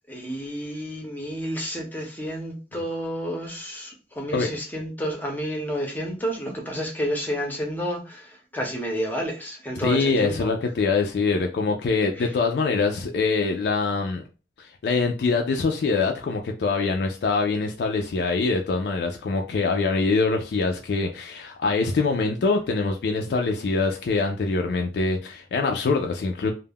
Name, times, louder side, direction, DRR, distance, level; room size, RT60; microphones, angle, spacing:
voice 1, 0.1-10.5 12.1-12.3, equal, 10° left, 0.6 m, -30 dB
voice 2, 9.8-14.2 14.6-26.5, left 4 dB, 65° left, 0.3 m, -24 dB
2.2 x 2.1 x 3.4 m
head